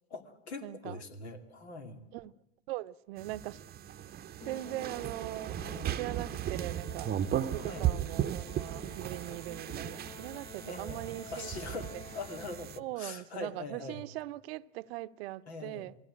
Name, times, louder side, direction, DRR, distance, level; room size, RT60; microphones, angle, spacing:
voice 1, 0.1-2.0 5.6-6.0 7.6-7.9 10.6-11.0 11.3-14.0 15.5-16.0, left 3 dB, 90° left, 2.7 m, -43 dB
voice 2, 0.6-1.0 2.1-2.3 2.7-3.6 4.5-5.6 6.0-7.1 7.5-11.5 11.9-12.0 12.8-15.9, right 17 dB, 70° right, 0.7 m, -40 dB
sound 1, 3.2-12.8, right 11 dB, 30° right, 0.7 m, -36 dB
Musical instrument, 4.4-12.9, left 6 dB, 15° left, 0.8 m, -50 dB
22.5 x 16.5 x 9.9 m
hypercardioid pair, 95°, 32 cm